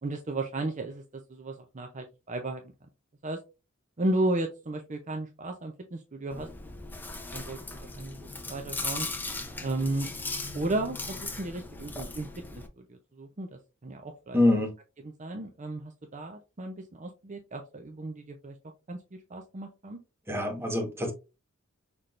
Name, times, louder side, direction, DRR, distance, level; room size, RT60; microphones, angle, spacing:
voice 1, 0.0-2.7 3.2-3.4 4.0-6.5 7.0-9.1 9.6-10.1 10.5-14.4 15.0-18.6 18.9-19.0 19.3-20.0, right 2 dB, 35° right, 0.6 m, -34 dB
Chewing mastication, 6.3-12.7, left 2 dB, 10° left, 0.7 m, -38 dB
voice 2, 14.3-14.7 20.3-21.1, left 2 dB, 10° right, 1.3 m, -25 dB
5.9 x 3.5 x 2.5 m
head